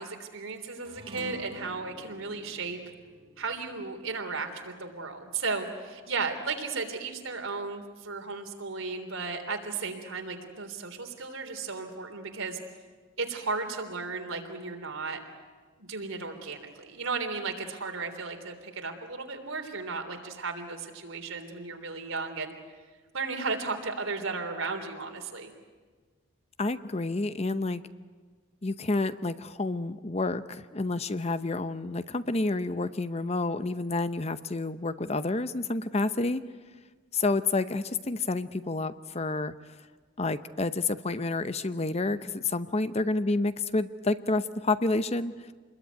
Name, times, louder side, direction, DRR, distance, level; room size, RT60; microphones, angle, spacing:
voice 1, 0.0-2.8 3.4-12.6 13.2-15.2 15.8-22.5 23.1-25.5, right 4 dB, 85° right, 4 dB, 3.4 m, -35 dB
sound 1, 0.8-5.5, equal, 30° right, 2.4 m, -49 dB
voice 2, 26.6-27.8 28.6-36.4 37.1-39.5 40.2-45.3, left 3 dB, 30° left, 12 dB, 0.8 m, -29 dB
27.5 x 21.5 x 9.4 m, 1.4 s
head